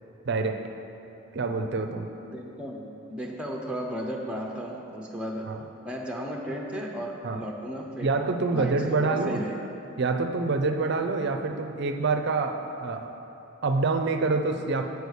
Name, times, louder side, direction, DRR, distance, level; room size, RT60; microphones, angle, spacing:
voice 1, 0.3-0.6 1.3-2.1 5.5-5.6 7.2-7.4 8.0-9.4 10.0-13.1 13.6-14.9, right 3 dB, 50° right, 6 dB, 0.4 m, -26 dB
voice 2, 2.2-5.6 5.8-8.1 8.5-9.7, equal, 5° right, -1 dB, 0.6 m, -35 dB
6.8 x 4.7 x 6.3 m, 3.0 s
head